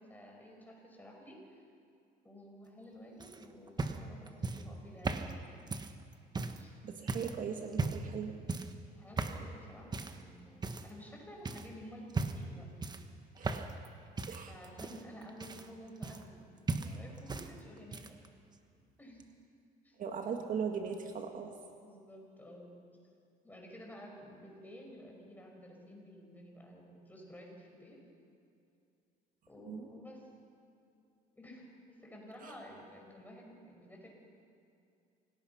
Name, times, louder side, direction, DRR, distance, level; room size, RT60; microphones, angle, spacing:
voice 1, 0.0-1.6 2.2-5.3 6.5-6.8 8.9-12.7 14.5-18.2 19.0-19.2 19.8-20.0 21.8-22.7 23.4-28.0 29.5-30.2 31.4-34.1, equal, 10° left, 0 dB, 5.5 m, -52 dB
sound 1, 3.2-6.6 7.1-7.4 7.7-8.1 8.5-8.8 9.2-9.5 9.9-10.2 10.6-11.1 11.4-11.7 12.1-12.5 12.8-13.9 14.2-16.4 16.7-17.5 17.8-18.3 19.2-19.3, right 3 dB, 25° right, 1.2 m, -37 dB
voice 2, 6.8-8.3 13.4-13.7 14.3-14.5 20.0-21.5 29.7-29.9 32.4-32.5, right 6 dB, 55° right, 4 dB, 1.6 m, -39 dB
26.0 x 18.0 x 5.9 m, 2.5 s
cardioid pair, 110°, 17 cm